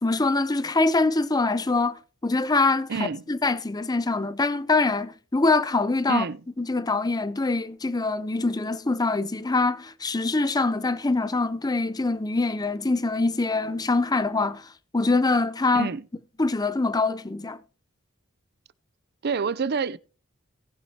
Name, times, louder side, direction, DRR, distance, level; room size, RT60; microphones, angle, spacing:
voice 1, 0.0-6.3 6.6-15.9 16.4-17.6, left 3 dB, 20° left, 0.6 m, -24 dB
voice 2, 2.9-3.2 6.1-6.4 15.7-16.0 19.2-20.0, right 5 dB, 50° right, 0.5 m, -27 dB
19.0 x 7.4 x 2.9 m
head